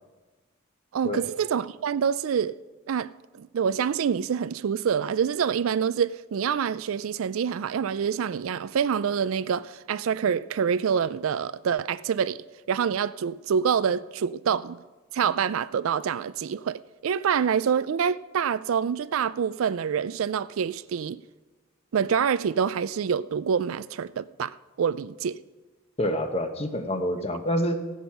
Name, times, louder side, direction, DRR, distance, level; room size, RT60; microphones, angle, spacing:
voice 1, 0.9-2.6 2.9-3.1 3.4-14.8 15.1-21.2 21.9-25.4, right 7 dB, 75° right, 0.4 m, -26 dB
voice 2, 26.0-27.8, equal, 30° left, 1.0 m, -27 dB
15.5 x 9.3 x 5.8 m
head